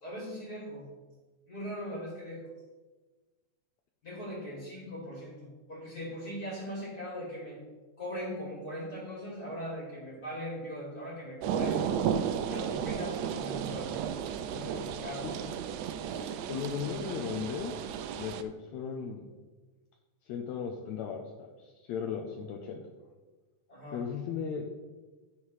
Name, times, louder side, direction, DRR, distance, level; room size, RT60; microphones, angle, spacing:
voice 1, 0.0-0.9 1.5-2.5 4.0-7.6 8.0-11.9 12.4-13.9 14.4-15.3 16.1-16.3 23.7-24.0, equal, 30° left, -5 dB, 3.1 m, -40 dB
sound 1, 11.4-18.4, right 8 dB, 80° right, 1.5 m, -34 dB
voice 2, 16.5-17.8 18.2-19.3 20.2-22.8 23.9-24.7, left 7 dB, 75° left, 2 dB, 1.9 m, -36 dB
16.0 x 5.7 x 3.2 m, 1.3 s
omnidirectional pair, 3.5 m